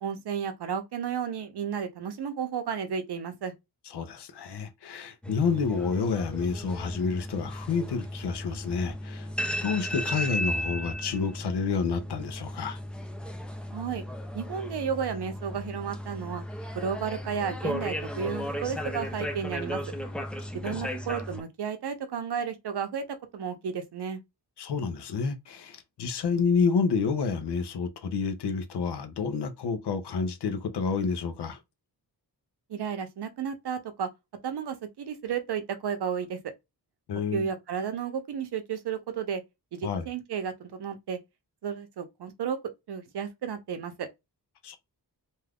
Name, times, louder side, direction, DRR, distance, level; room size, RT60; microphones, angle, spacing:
voice 1, 0.0-3.5 13.7-14.0 14.3-16.4 16.7-19.8 20.6-23.0 23.3-24.2 32.7-34.1 34.4-36.4 37.3-39.4 39.7-41.2 41.6-42.6 42.9-44.1, right 7 dB, 75° right, 0.7 m, -33 dB
voice 2, 3.9-9.3 9.6-12.8 20.7-20.9 24.6-31.6 37.1-37.5 39.8-40.1 44.6-44.8, left 5 dB, 80° left, 0.7 m, -29 dB
sound 1, 5.2-21.4, equal, 5° left, 0.3 m, -35 dB
2.6 x 2.3 x 3.4 m
wide cardioid pair, 170°, 40 cm